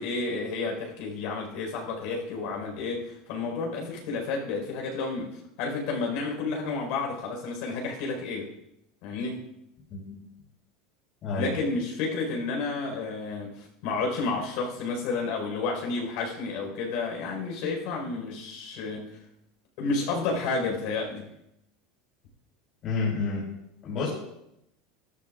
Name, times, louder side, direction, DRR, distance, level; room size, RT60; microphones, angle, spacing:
voice 1, 0.0-8.5 9.0-9.5 11.4-19.2 19.8-21.2, left 3 dB, 65° left, 1 dB, 4.7 m, -31 dB
voice 2, 9.9-10.2 11.2-11.5 22.8-23.4 23.8-24.1, left 4 dB, 40° left, -6 dB, 5.0 m, -29 dB
13.5 x 13.0 x 2.5 m, 0.82 s
supercardioid pair, 145°, 0 cm